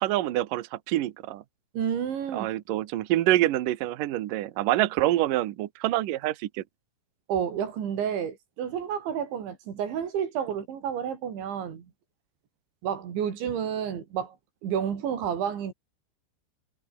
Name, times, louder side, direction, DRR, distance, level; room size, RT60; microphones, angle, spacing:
voice 1, 0.0-1.4 2.3-6.6, right 15 dB, 70° right, 2.2 m, -26 dB
voice 2, 1.7-2.5 7.3-11.9 12.8-14.4 14.6-15.7, right 8 dB, 90° right, 5.8 m, -30 dB
omnidirectional pair, 5.1 m